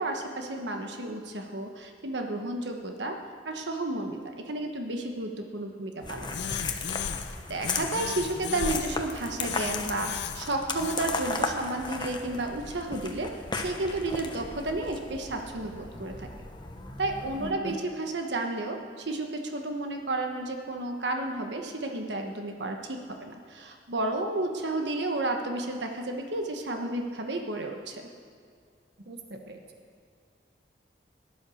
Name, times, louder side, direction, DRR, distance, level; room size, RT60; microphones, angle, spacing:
voice 1, 0.0-3.2 3.4-6.5 7.0-7.2 7.5-16.3 17.0-28.0, right 2 dB, 85° right, 3 dB, 1.3 m, -32 dB
sound 1, 6.0-17.5, left 3 dB, 25° left, 1.0 m, -36 dB
sound 2, 6.3-7.4 7.6-9.0 9.4-11.0, left 7 dB, 75° left, 0.6 m, -35 dB
voice 2, 17.4-17.8 29.1-29.6, right 2 dB, 65° right, 4 dB, 1.2 m, -40 dB
17.0 x 11.0 x 6.4 m, 2.2 s
head